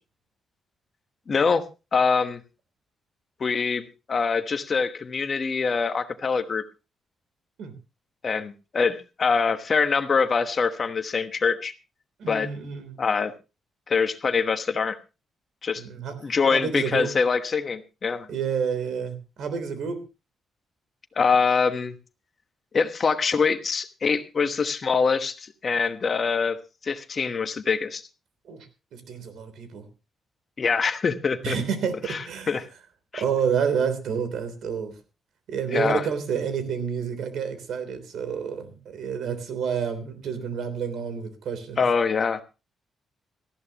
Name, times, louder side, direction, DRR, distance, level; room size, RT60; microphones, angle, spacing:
voice 1, 1.3-1.6 1.9-2.4 3.4-6.6 8.2-11.7 12.3-12.5 13.0-13.3 13.9-15.0 15.6-15.8 16.2-18.3 21.2-21.9 22.7-26.6 26.8-28.0 30.6-31.6 32.0-32.7 33.1-33.2 35.7-36.0 41.8-42.4, left 5 dB, 35° left, 9 dB, 1.2 m, -24 dB
voice 2, 12.2-13.0 15.8-17.1 18.3-20.0 28.5-28.7 28.9-29.8 31.4-32.6 33.2-34.9 35.5-41.8, right 6 dB, 70° right, 10 dB, 3.3 m, -29 dB
18.5 x 14.5 x 2.9 m, 0.30 s
cardioid pair, 150°, 0 cm